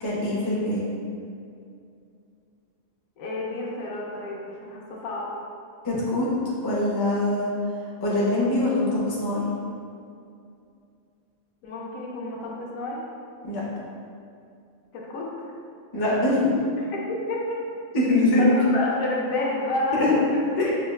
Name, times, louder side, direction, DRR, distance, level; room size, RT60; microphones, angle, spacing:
voice 1, 0.0-0.8 5.8-6.3 6.6-7.5 8.0-9.5 13.4-13.6 15.9-16.5 17.9-18.6 19.9-20.1 20.6-20.7, left 2 dB, 30° left, -6 dB, 0.4 m, -23 dB
voice 2, 3.2-5.3 11.6-13.0 14.9-15.3 16.8-17.6 18.4-20.4, left 2 dB, 80° left, -3 dB, 1.1 m, -30 dB
5.4 x 2.1 x 2.3 m, 2.5 s
omnidirectional pair, 1.4 m